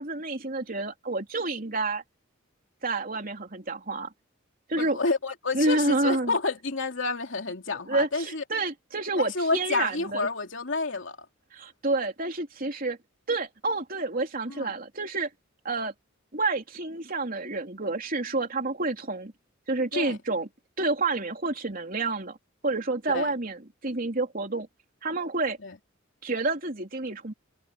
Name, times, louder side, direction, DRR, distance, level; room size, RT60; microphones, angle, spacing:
voice 1, 0.0-2.0 2.8-4.1 4.7-5.0 5.5-6.3 7.9-10.3 11.5-13.0 13.3-15.3 15.6-15.9 16.3-19.3 19.7-20.5 20.8-22.4 22.6-24.7 25.0-25.6 26.2-27.3, right 3 dB, 45° right, 3.4 m, -29 dB
voice 2, 4.7-8.4 9.2-11.2 14.5-14.7 19.9-20.2 23.1-23.3 25.6-25.8, left 3 dB, 65° left, 3.1 m, -29 dB
head